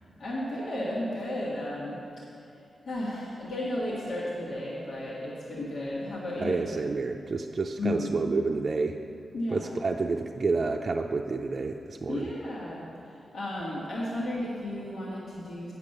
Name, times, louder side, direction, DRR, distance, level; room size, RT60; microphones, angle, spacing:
voice 1, 0.2-2.3 2.8-6.6 7.8-8.2 9.3-9.8 12.1-15.7, left 1 dB, 75° left, -7 dB, 1.8 m, -33 dB
voice 2, 6.4-9.0 9.5-12.3, right 4 dB, 55° right, 1 dB, 0.5 m, -29 dB
8.4 x 6.7 x 6.6 m, 2.6 s
supercardioid pair, 40°, 0 cm